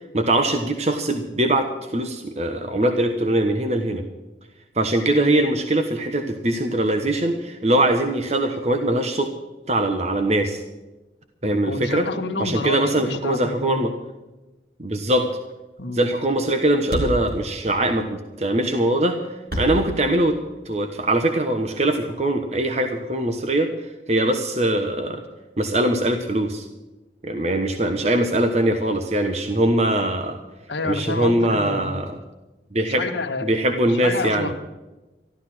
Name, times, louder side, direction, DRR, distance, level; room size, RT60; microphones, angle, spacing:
voice 1, 0.1-4.0 4.7-9.3 9.7-10.6 11.4-12.1 12.4-13.9 14.8-15.3 15.9-19.2 19.6-20.3 20.6-23.7 24.1-25.2 25.6-26.7 27.2-30.4 30.8-32.2 32.7-33.1 33.4-34.5, right 1 dB, 35° right, 6 dB, 1.2 m, -22 dB
voice 2, 11.6-13.9 15.8-16.0 30.7-31.9 32.9-33.5 33.9-34.5, left 3 dB, 80° left, 5 dB, 1.6 m, -29 dB
Thump thud, 15.5-15.7 16.0-16.1 16.3-16.4 16.6-16.7 16.8-20.9, equal, 55° right, 4.0 m, -30 dB
13.5 x 12.5 x 6.2 m, 1.1 s
head